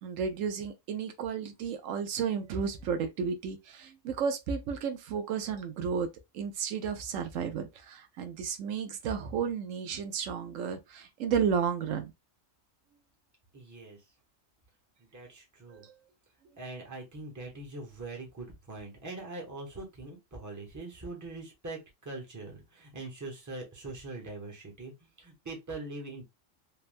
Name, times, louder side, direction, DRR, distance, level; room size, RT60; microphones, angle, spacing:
voice 1, 0.0-6.1 6.3-12.1 15.7-15.9, right 6 dB, 85° right, 1.0 m, -32 dB
voice 2, 13.5-14.0 15.0-15.9 16.6-26.2, right 2 dB, 15° right, 0.8 m, -42 dB
3.4 x 2.1 x 2.5 m
omnidirectional pair, 1.3 m